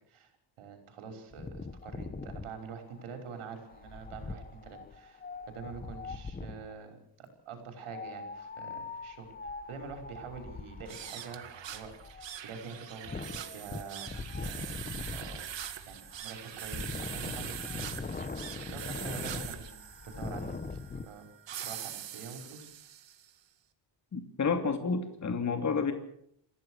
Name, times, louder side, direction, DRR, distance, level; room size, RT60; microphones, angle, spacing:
voice 1, 0.6-9.3 9.7-14.1 14.4-14.8 15.1-15.4 15.8-18.3 18.6-20.8 21.1-21.3 21.6-22.7, right 5 dB, 85° right, 5 dB, 5.9 m, -46 dB
Wind, 1.3-6.7 7.8-21.1, left 4 dB, 20° left, 1.1 m, -42 dB
sound 1, 10.8-23.3, right 10 dB, 60° right, 2.1 m, -43 dB
voice 2, 24.1-25.9, left 5 dB, 35° left, 6 dB, 2.7 m, -30 dB
28.0 x 16.0 x 6.6 m, 0.69 s
cardioid pair, 140°, 48 cm